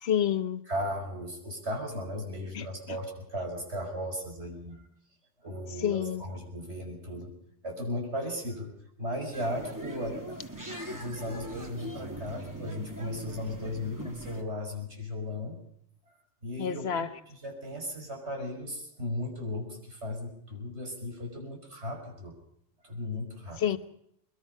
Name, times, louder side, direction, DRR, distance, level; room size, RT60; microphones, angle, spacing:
voice 1, 0.0-0.6 2.5-3.0 5.8-6.2 16.6-17.1 23.6-23.8, left 9 dB, 65° left, 1.3 m, -29 dB
voice 2, 0.7-4.8 5.4-7.3 7.6-8.7 9.0-10.4 10.9-15.6 16.4-22.3 22.8-23.6, left 1 dB, 70° right, 6.2 m, -36 dB
sound 1, 9.3-14.4, equal, 15° right, 2.4 m, -40 dB
23.0 x 21.5 x 5.6 m
omnidirectional pair, 1.2 m